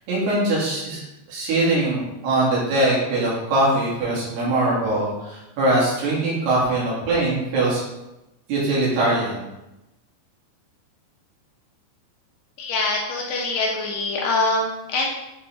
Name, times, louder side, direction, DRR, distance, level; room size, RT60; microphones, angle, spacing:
voice 1, 0.1-1.0 1.3-7.8 8.5-9.4, right 2 dB, 65° right, -7 dB, 4.4 m, -22 dB
voice 2, 12.6-15.2, left 2 dB, 70° left, -2 dB, 2.8 m, -24 dB
8.7 x 5.9 x 3.5 m, 0.95 s
omnidirectional pair, 5.2 m